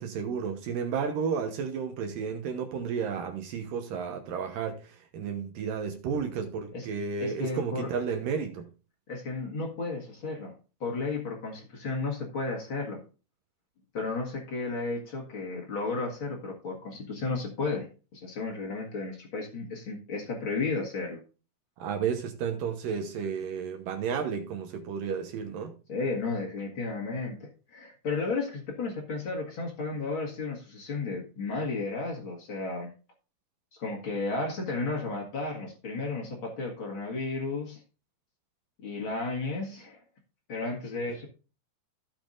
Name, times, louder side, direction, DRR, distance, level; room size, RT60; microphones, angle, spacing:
voice 1, 0.0-8.7 21.8-25.7, right 6 dB, 75° right, 2.1 m, -32 dB
voice 2, 7.2-7.9 9.1-10.5 10.8-13.0 13.9-17.9 18.1-21.2 25.9-32.9 33.7-37.8 38.8-40.0 40.5-41.2, left 3 dB, 60° left, 1.3 m, -33 dB
15.5 x 6.9 x 2.5 m
omnidirectional pair, 5.3 m